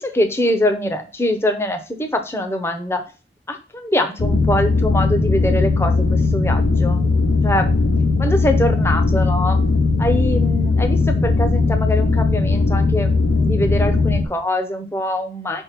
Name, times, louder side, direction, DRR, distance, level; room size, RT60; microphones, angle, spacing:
voice 1, 0.0-3.0 3.5-7.0 7.4-7.9 8.2-9.6 10.0-15.6, left 1 dB, 15° left, 5 dB, 0.7 m, -23 dB
sound 1, 4.2-14.2, left 3 dB, 90° left, 0.7 m, -18 dB
5.3 x 3.5 x 5.7 m, 0.34 s
head